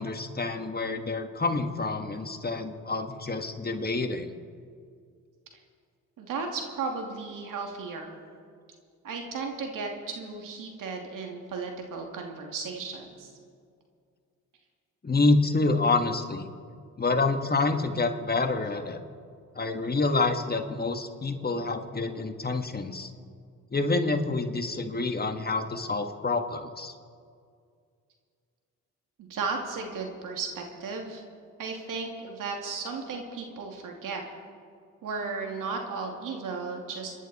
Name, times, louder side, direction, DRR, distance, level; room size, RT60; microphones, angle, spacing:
voice 1, 0.0-4.3 15.0-16.5 17.0-19.0 19.5-23.1 23.7-26.9, left 3 dB, 30° left, 6 dB, 1.7 m, -27 dB
voice 2, 6.2-8.2 9.0-13.3 29.2-31.2 31.6-34.2 35.0-37.1, right 4 dB, 70° right, 2 dB, 2.7 m, -35 dB
28.0 x 11.0 x 4.3 m, 2.2 s
supercardioid pair, 65°, 33 cm